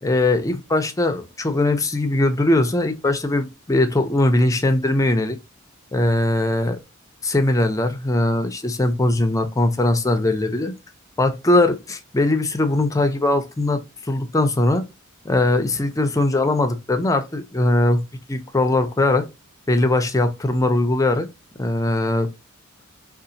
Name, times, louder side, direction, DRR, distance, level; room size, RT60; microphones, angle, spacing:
voice 1, 0.0-5.4 5.9-6.8 7.2-10.7 11.2-14.8 15.2-18.0 18.3-19.3 19.7-21.3 21.6-22.3, left 2 dB, 15° left, 0.4 m, -20 dB
3.9 x 2.4 x 2.6 m
head